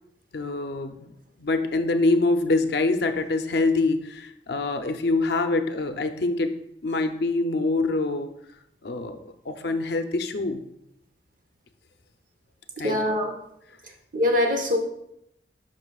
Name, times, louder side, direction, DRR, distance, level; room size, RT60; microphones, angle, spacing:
voice 1, 0.3-1.1 1.4-8.3 8.8-10.6 12.8-13.0, left 3 dB, 65° left, 7 dB, 0.6 m, -25 dB
voice 2, 12.8-13.3 14.1-14.8, left 1 dB, 45° right, 2 dB, 1.0 m, -23 dB
11.0 x 6.0 x 2.4 m, 0.78 s
head